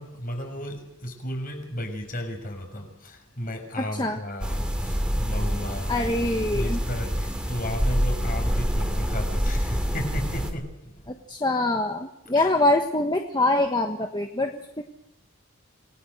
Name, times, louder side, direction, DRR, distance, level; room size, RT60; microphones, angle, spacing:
voice 1, 0.0-6.0 6.5-11.2 12.3-12.5, equal, 40° left, 5 dB, 6.0 m, -34 dB
voice 2, 3.8-4.2 5.9-6.8 11.1-14.8, left 2 dB, 20° left, 4 dB, 1.3 m, -24 dB
sound 1, 4.4-10.5, equal, 5° right, 2.9 m, -26 dB
28.0 x 19.5 x 6.6 m, 0.79 s
head